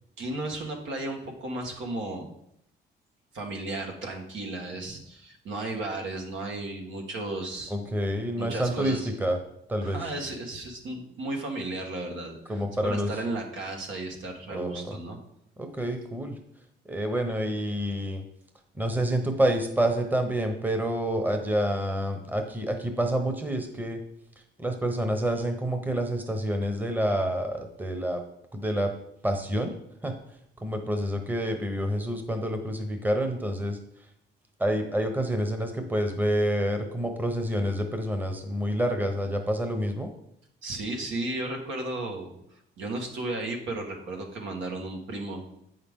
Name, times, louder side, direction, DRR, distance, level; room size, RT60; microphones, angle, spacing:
voice 1, 0.2-2.3 3.3-7.8 8.4-9.1 9.8-15.2 40.6-45.4, right 2 dB, 75° right, 1 dB, 1.6 m, -34 dB
voice 2, 7.7-9.4 9.7-10.0 12.5-13.1 14.5-15.0 15.6-16.4 16.8-18.2 18.8-24.0 24.6-28.2 28.5-28.9 29.2-29.7 30.0-30.1 30.6-33.8 34.6-40.1, equal, 10° right, 5 dB, 1.0 m, -28 dB
8.2 x 5.6 x 3.7 m, 0.74 s
cardioid pair, 90°, 20 cm